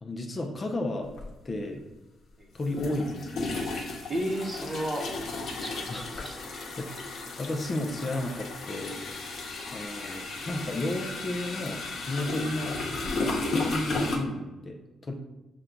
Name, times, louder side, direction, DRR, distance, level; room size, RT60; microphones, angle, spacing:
voice 1, 0.0-1.1 1.4-1.9 2.5-3.7 5.9-6.3 6.8-9.0 9.7-10.2 10.5-12.8 13.5-15.1, left 1 dB, 35° left, 3 dB, 0.5 m, -33 dB
sound 1, 1.1-1.3 2.6-14.2, left 3 dB, 60° left, 0.9 m, -34 dB
voice 2, 4.1-5.1 5.6-6.4 9.6-9.7, right 1 dB, 20° right, 1 dB, 0.9 m, -33 dB
5.8 x 2.2 x 3.8 m, 1.0 s
cardioid pair, 90°, 0 cm